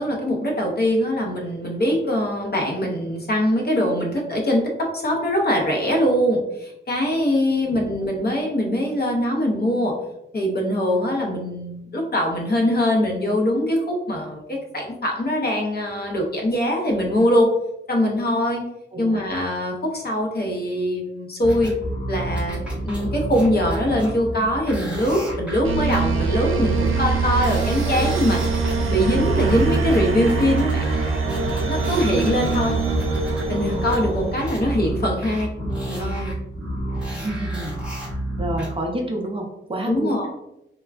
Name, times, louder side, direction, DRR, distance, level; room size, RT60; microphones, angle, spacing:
voice 1, 0.0-9.9 10.3-17.5 17.9-18.6 19.0-21.8 22.1-30.9 31.7-32.8 33.5-35.5 35.8-36.3 39.9-40.3, equal, 50° left, 0 dB, 0.7 m, -22 dB
voice 2, 7.7-8.1 18.9-19.2 37.0-37.8 38.4-40.3, right 1 dB, 25° right, 0 dB, 0.5 m, -30 dB
sound 1, 21.4-38.7, right 1 dB, 5° right, 0.8 m, -30 dB
sound 2, 25.6-35.1, right 4 dB, 85° right, 0.5 m, -24 dB
3.2 x 2.2 x 2.4 m, 0.87 s
wide cardioid pair, 125°, 21 cm